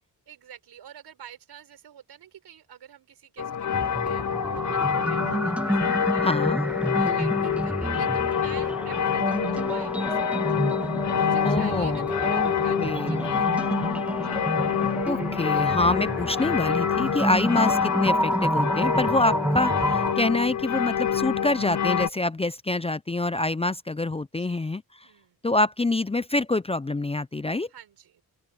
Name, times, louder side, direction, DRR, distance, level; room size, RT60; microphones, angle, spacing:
voice 1, 0.3-10.7 11.1-13.9 14.1-14.4 24.4-24.7 25.0-25.4 27.7-28.2, right 9 dB, 85° right, 4.9 m, -48 dB
sound 1, 3.4-22.1, left 8 dB, 45° left, 0.8 m, -27 dB
sound 2, 3.7-20.1, equal, 5° right, 2.1 m, -29 dB
voice 2, 6.2-6.6 11.4-12.5 12.8-13.4 15.1-24.8 25.4-27.7, left 2 dB, 15° left, 0.6 m, -26 dB
open air
cardioid pair, 65°, 39 cm